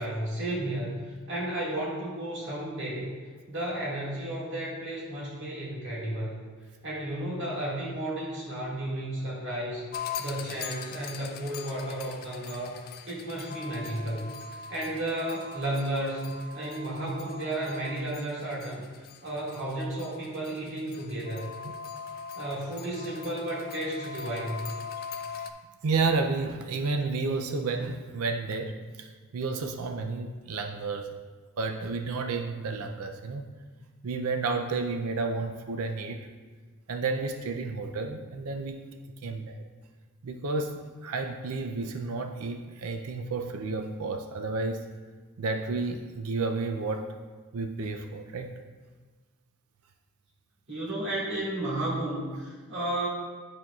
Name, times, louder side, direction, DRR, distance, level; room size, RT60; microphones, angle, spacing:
voice 1, 0.0-3.1 3.5-6.4 6.8-18.8 19.2-21.5 22.3-24.8 50.7-53.1, right 1 dB, 55° right, -6 dB, 2.0 m, -33 dB
sound 1, 9.9-25.5, left 6 dB, 45° left, 0.4 m, -41 dB
voice 2, 25.8-31.1 31.6-33.5 34.0-36.2 36.9-38.9 39.2-39.6 40.2-44.8 45.4-47.2 47.5-48.5, right 3 dB, 80° right, 5 dB, 0.5 m, -31 dB
11.0 x 4.5 x 2.4 m, 1.4 s
head